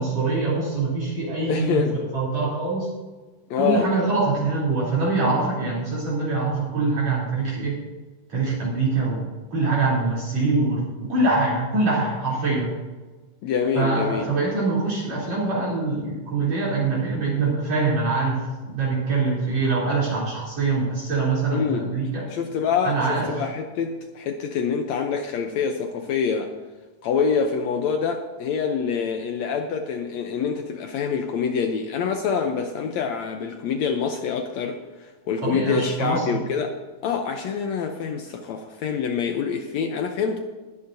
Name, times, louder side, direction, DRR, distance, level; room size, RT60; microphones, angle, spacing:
voice 1, 0.0-2.9 3.6-7.8 8.3-9.2 9.5-12.7 13.7-22.2 22.8-23.3 35.4-36.4, right 3 dB, 50° right, -8 dB, 4.5 m, -24 dB
voice 2, 1.5-2.0 3.5-3.9 13.4-14.3 21.5-21.9 22.3-26.5 27.0-36.8 37.0-40.4, left 6 dB, 75° left, 5 dB, 1.7 m, -26 dB
21.0 x 11.0 x 2.7 m, 1.3 s
omnidirectional pair, 3.9 m